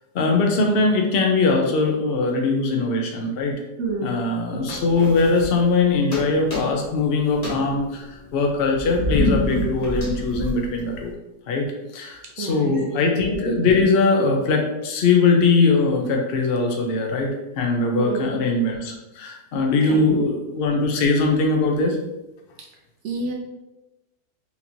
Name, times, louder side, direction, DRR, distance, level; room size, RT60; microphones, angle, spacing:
voice 1, 0.1-3.6 4.0-11.1 11.5-11.7 11.9-22.0, left 3 dB, 65° left, 1 dB, 0.6 m, -21 dB
voice 2, 3.8-4.1 12.4-12.7 17.9-18.4 19.8-20.2 23.0-23.3, right 2 dB, 70° right, 0 dB, 0.7 m, -28 dB
sound 1, 4.7-5.8 6.1-7.0 7.3-11.1, left 1 dB, 30° left, 0.8 m, -27 dB
4.3 x 2.8 x 2.6 m, 1.0 s
omnidirectional pair, 1.7 m